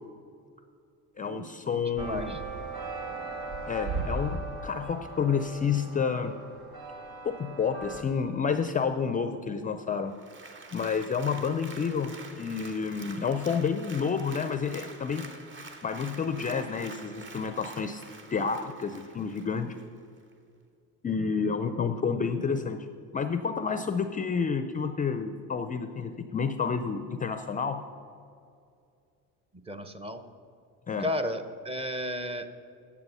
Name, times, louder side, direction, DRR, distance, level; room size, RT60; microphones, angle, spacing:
voice 1, 1.2-2.4 3.7-6.3 7.2-10.1 10.7-15.3 15.8-18.0 18.3-19.8 21.0-22.9 23.1-27.8 30.9-31.1, left 6 dB, 25° left, 9 dB, 0.4 m, -30 dB
voice 2, 2.0-2.4 29.7-30.2 31.0-32.5, left 1 dB, 15° right, 8 dB, 0.7 m, -33 dB
sound 1, 2.0-8.0, right 3 dB, 75° right, 1.8 m, -37 dB
Applause, 10.1-19.9 20.3-20.4, right 3 dB, 30° right, 1.1 m, -47 dB
10.5 x 7.2 x 5.6 m, 2.4 s
supercardioid pair, 105°, 37 cm